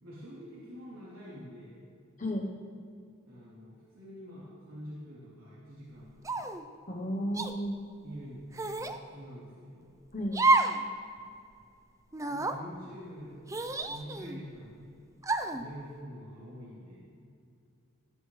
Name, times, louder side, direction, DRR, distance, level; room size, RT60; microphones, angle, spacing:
voice 1, 0.0-1.8 3.3-6.4 8.0-8.4 8.7-10.0 12.3-14.9 15.5-17.1, equal, 85° right, -8 dB, 3.4 m, -46 dB
sound 1, 6.2-6.6 7.3-7.5 8.5-9.0 10.3-10.8 11.2-11.3 12.1-12.6 13.5-14.4 15.2-15.6, right 3 dB, 15° right, 0.5 m, -29 dB
voice 2, 6.9-7.8 10.1-10.4, equal, 40° left, 0 dB, 1.0 m, -33 dB
18.5 x 15.0 x 3.3 m, 2.4 s
head